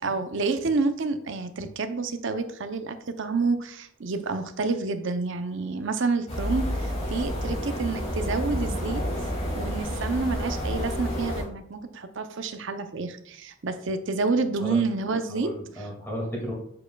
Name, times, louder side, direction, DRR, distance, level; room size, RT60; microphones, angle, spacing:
voice 1, 0.0-9.0 9.5-15.9, right 4 dB, 55° right, 9 dB, 0.6 m, -29 dB
sound 1, 6.3-11.4, equal, 30° left, 2.5 m, -29 dB
voice 2, 9.9-10.3 14.6-14.8 15.3-16.5, equal, 10° left, -3 dB, 2.1 m, -34 dB
7.4 x 6.7 x 2.3 m, 0.67 s
head